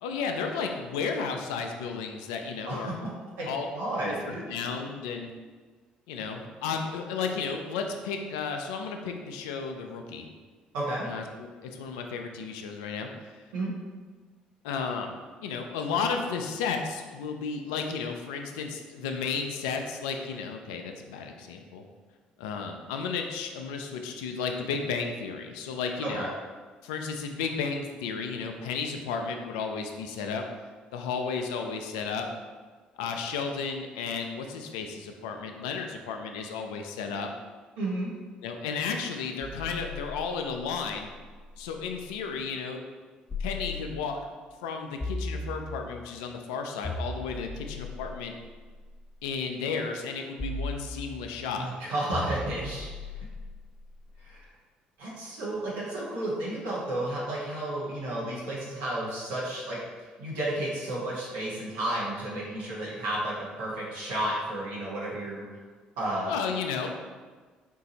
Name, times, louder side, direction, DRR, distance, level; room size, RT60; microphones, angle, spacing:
voice 1, 0.0-2.9 3.5-3.7 4.0-4.1 4.5-5.3 6.1-10.3 11.0-13.4 14.6-15.2 15.4-21.8 22.4-26.3 26.8-30.5 30.9-32.3 33.0-37.3 38.4-41.1 41.6-42.8 43.4-44.2 44.6-48.3 49.2-51.7 66.3-66.9, left 5 dB, 90° left, 4 dB, 0.4 m, -33 dB
voice 2, 2.6-3.1 3.4-4.4 10.7-11.1 13.5-13.7 26.0-26.3 37.8-38.1 51.6-52.9 54.2-54.4 55.0-59.8 60.2-65.4 66.0-66.3, right 1 dB, 85° right, -7 dB, 1.1 m, -32 dB
sound 1, 39.4-42.2 43.3-44.3 45.0-46.1 46.8-49.1 50.4-51.5 52.1-54.3, left 2 dB, 30° left, 1.2 m, -38 dB
4.6 x 2.6 x 4.0 m, 1.4 s
supercardioid pair, 65°, 3 cm